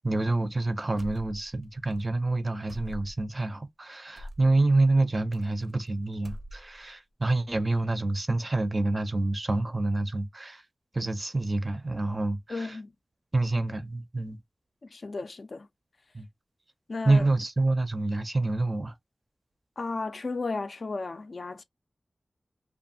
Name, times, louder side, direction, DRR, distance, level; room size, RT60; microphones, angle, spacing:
voice 1, 0.0-10.6 10.9-12.8 13.3-14.4 16.1-16.3 17.1-18.9, right 2 dB, 35° right, 0.4 m, -27 dB
sound 1, 1.0-1.6 1.9-2.0 2.7-3.3 4.2-4.5 5.3-5.9 6.1-6.9, equal, 85° right, 0.5 m, -43 dB
voice 2, 12.5-12.9 14.8-15.7 16.9-17.3 19.8-21.6, left 3 dB, 60° left, 0.3 m, -34 dB
2.5 x 2.2 x 2.6 m
wide cardioid pair, 80°, 0 cm